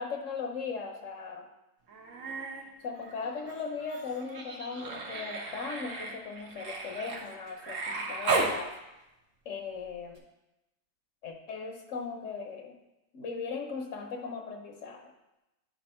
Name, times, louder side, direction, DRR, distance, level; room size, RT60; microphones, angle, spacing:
voice 1, 0.0-1.5 2.8-8.7 9.4-10.2 11.2-12.7 13.1-15.0, left 5 dB, 70° left, 3 dB, 1.1 m, -38 dB
Human voice, 1.9-2.6 3.0-8.6 10.2-10.3, right 3 dB, 65° right, 1.3 m, -35 dB
10.0 x 3.5 x 4.3 m, 0.97 s
omnidirectional pair, 1.4 m